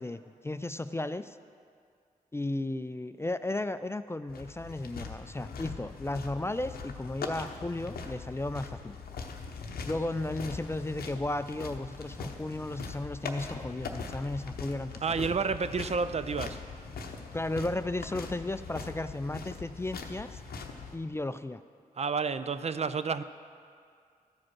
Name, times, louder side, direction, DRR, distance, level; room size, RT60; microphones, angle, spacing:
voice 1, 0.0-1.4 2.3-9.0 9.9-14.9 15.2-15.4 17.3-20.4 20.9-21.6, left 2 dB, 15° left, 12 dB, 0.3 m, -34 dB
sound 1, 4.3-21.0, left 4 dB, 90° left, 0.7 m, -41 dB
voice 2, 15.0-16.6 22.0-23.2, right 5 dB, 45° right, 12 dB, 0.4 m, -30 dB
13.0 x 5.0 x 6.1 m, 2.2 s
cardioid pair, 50°, 15 cm